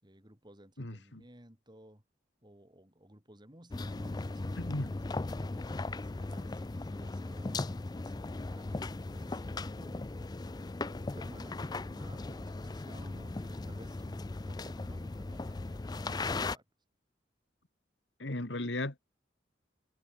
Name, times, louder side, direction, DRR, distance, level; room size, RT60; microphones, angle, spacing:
voice 1, 0.0-2.0 2.4-5.0 5.4-16.6, right 1 dB, 25° right, 5.7 m, -56 dB
voice 2, 0.8-1.2 4.6-4.9 18.2-19.0, left 1 dB, 80° left, 2.3 m, -36 dB
sound 1, 3.7-16.6, left 2 dB, 20° left, 0.4 m, -38 dB
head